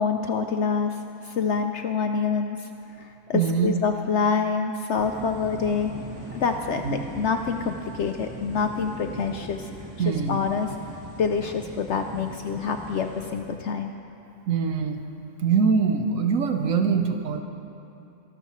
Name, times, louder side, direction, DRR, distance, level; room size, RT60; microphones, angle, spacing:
voice 1, 0.0-2.7 3.0-5.9 6.3-9.7 10.1-10.7 11.2-13.9, left 5 dB, 65° left, 5 dB, 0.7 m, -26 dB
voice 2, 3.3-3.7 6.8-7.1 10.0-10.4 14.5-15.1 15.4-17.4, right 6 dB, 65° right, 6 dB, 1.1 m, -23 dB
sound 1, 5.0-13.4, right 1 dB, 15° right, 1.3 m, -41 dB
23.0 x 12.0 x 3.1 m, 2.8 s
omnidirectional pair, 1.6 m